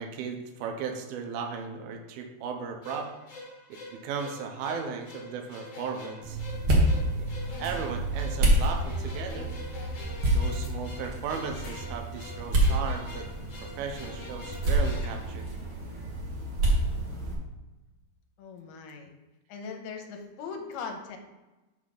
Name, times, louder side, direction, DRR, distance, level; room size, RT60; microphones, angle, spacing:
voice 1, 0.0-3.1 3.7-6.4 6.9-7.3 7.6-9.5 10.3-13.3 13.6-15.5, right 6 dB, 80° right, 4 dB, 2.5 m, -36 dB
sound 1, 2.8-16.1, left 1 dB, 35° left, 2.4 m, -45 dB
sound 2, 6.2-17.3, right 1 dB, 65° right, 1.4 m, -28 dB
sound 3, 7.6-7.8 8.2-8.3 8.5-8.7 10.5-11.3 11.6-11.8 12.1-12.7 14.5-15.3, left 4 dB, 60° left, 2.8 m, -48 dB
voice 2, 18.4-19.1 19.5-21.2, left 5 dB, 75° left, 4 dB, 2.7 m, -39 dB
6.3 x 3.9 x 6.2 m, 1.1 s
omnidirectional pair, 4.6 m